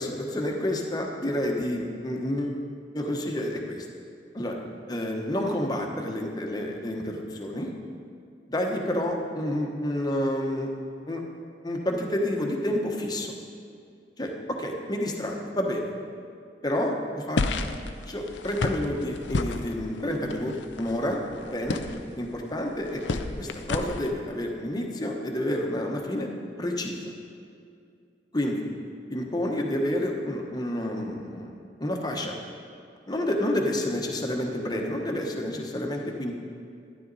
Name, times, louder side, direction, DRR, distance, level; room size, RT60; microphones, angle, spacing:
voice 1, 0.0-2.6 2.9-3.9 4.3-4.6 4.9-7.7 8.5-10.7 11.1-11.2 11.6-13.3 14.2-15.9 16.6-17.4 18.1-21.8 22.1-26.3 26.6-27.1 28.3-28.6 29.1-32.3 33.1-36.3, left 1 dB, 25° left, 1 dB, 1.1 m, -29 dB
sound 1, 17.4-24.1, left 3 dB, 85° left, 0.6 m, -32 dB
12.5 x 10.5 x 4.1 m, 2.4 s
head